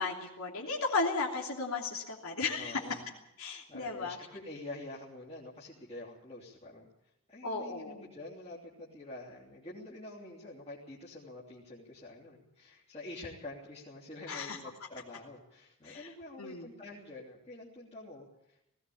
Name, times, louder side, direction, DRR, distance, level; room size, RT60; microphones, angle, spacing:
voice 1, 0.0-3.0 3.4-4.2 7.4-8.0 14.3-14.6 15.8-16.1 16.4-16.7, left 3 dB, 85° left, -2 dB, 3.1 m, -35 dB
voice 2, 2.6-3.0 3.7-18.7, left 2 dB, 30° left, -6 dB, 3.2 m, -47 dB
18.5 x 17.0 x 8.6 m, 0.84 s
head